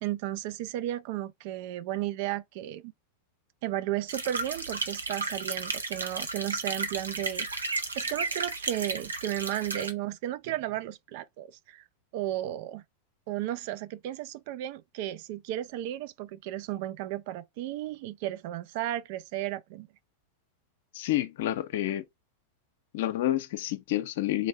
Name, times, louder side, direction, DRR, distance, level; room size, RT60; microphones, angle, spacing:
voice 1, 0.0-2.9 3.6-11.8 12.1-12.8 13.3-19.9, right 13 dB, 50° right, 0.4 m, -34 dB
sound 1, 4.1-9.9, right 3 dB, 75° right, 0.7 m, -33 dB
voice 2, 20.9-22.0 22.9-24.5, left 14 dB, 55° left, 0.5 m, -29 dB
4.0 x 2.6 x 4.5 m
figure-of-eight pair, 90°, 0 cm